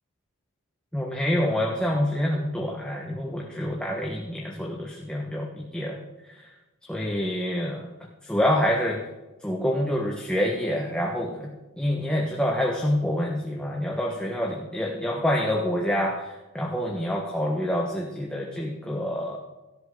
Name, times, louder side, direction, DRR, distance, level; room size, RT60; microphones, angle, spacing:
voice 1, 0.9-6.5 6.8-7.9 8.2-9.1 9.4-19.4, left 1 dB, 5° left, -1 dB, 1.4 m, -27 dB
17.0 x 14.0 x 4.0 m, 1.1 s
head